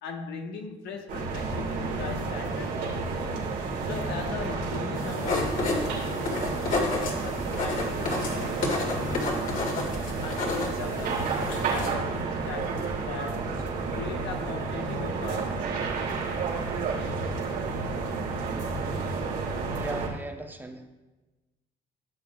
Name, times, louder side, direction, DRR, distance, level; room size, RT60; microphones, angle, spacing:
voice 1, 0.0-3.3 3.8-9.5 10.2-13.5 13.9-15.9, left 5 dB, 85° left, 1.2 m, -39 dB
sound 1, 1.1-20.1, right 4 dB, 85° right, 3.2 m, -31 dB
sound 2, 5.0-11.9, left 3 dB, 50° left, 2.0 m, -31 dB
voice 2, 19.7-20.8, right 2 dB, 10° right, 0.9 m, -37 dB
16.0 x 7.4 x 2.3 m
cardioid pair, 110°, 17 cm